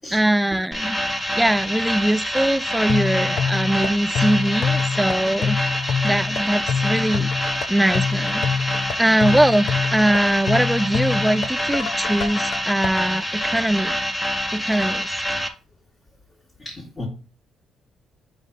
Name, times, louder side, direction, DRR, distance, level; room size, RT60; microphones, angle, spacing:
voice 1, 0.1-1.0 1.4-5.6 6.0-8.4 9.0-14.0 14.5-15.1, right 1 dB, 5° right, 0.3 m, -21 dB
sound 1, 0.7-15.5, equal, 10° left, 1.1 m, -26 dB
sound 2, 2.9-12.9, left 6 dB, 70° left, 0.7 m, -26 dB
voice 2, 16.6-17.1, left 2 dB, 30° left, 2.1 m, -36 dB
4.9 x 3.9 x 5.2 m
cardioid pair, 90°, 0 cm